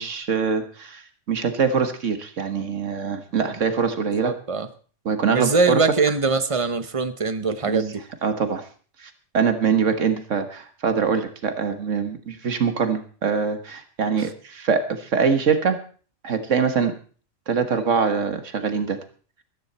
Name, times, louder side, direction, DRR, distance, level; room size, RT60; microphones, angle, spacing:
voice 1, 0.0-4.3 5.1-5.8 7.7-7.8 8.2-8.7 9.0-15.8 16.2-16.9 17.5-19.0, right 6 dB, 80° right, 8 dB, 1.8 m, -23 dB
voice 2, 4.1-4.7 5.3-8.0 14.2-14.3, right 4 dB, 30° right, 11 dB, 0.9 m, -22 dB
14.0 x 14.0 x 4.2 m, 0.41 s
omnidirectional pair, 1.3 m